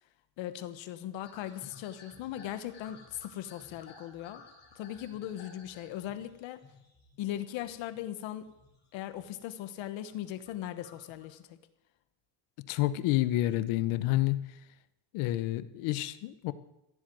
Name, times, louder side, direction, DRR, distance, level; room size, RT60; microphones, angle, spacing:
voice 1, 0.4-4.4 4.7-6.6 7.2-8.5 8.9-11.6, left 12 dB, 65° left, 11 dB, 1.2 m, -39 dB
sound 1, 1.2-8.0 8.4-9.4 9.8-11.3, left 3 dB, 20° left, 4.1 m, -56 dB
voice 2, 12.6-14.4 15.1-16.5, left 15 dB, 85° left, 14 dB, 1.0 m, -29 dB
15.0 x 7.8 x 9.2 m, 0.91 s
cardioid pair, 175°, 49 cm